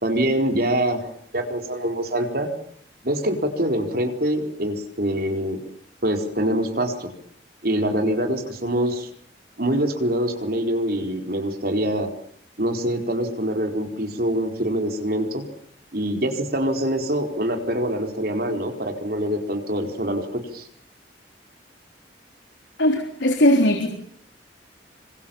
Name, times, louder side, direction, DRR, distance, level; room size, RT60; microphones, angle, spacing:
voice 1, 0.0-2.5 3.0-5.6 6.0-7.1 7.6-9.1 9.6-12.1 12.6-15.5 15.9-20.7, right 1 dB, 55° right, 4 dB, 4.4 m, -24 dB
voice 2, 22.8-23.9, left 1 dB, 90° left, 4 dB, 3.8 m, -18 dB
28.0 x 25.5 x 7.2 m, 0.63 s
head